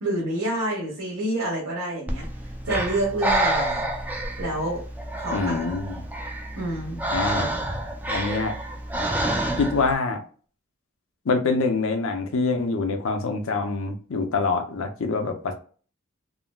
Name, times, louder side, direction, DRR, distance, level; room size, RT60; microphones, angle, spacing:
voice 1, 0.0-2.3 2.6-3.9 4.4-4.8 5.2-5.4 6.6-7.1, right 1 dB, 85° right, -5 dB, 1.1 m, -27 dB
Breathing, 2.1-9.9, right 1 dB, 10° right, 0.4 m, -28 dB
voice 2, 5.3-6.0 7.1-7.5 8.1-8.6 9.6-10.2 11.2-15.5, left 3 dB, 65° left, 5 dB, 0.6 m, -25 dB
3.7 x 2.1 x 2.2 m, 0.40 s
head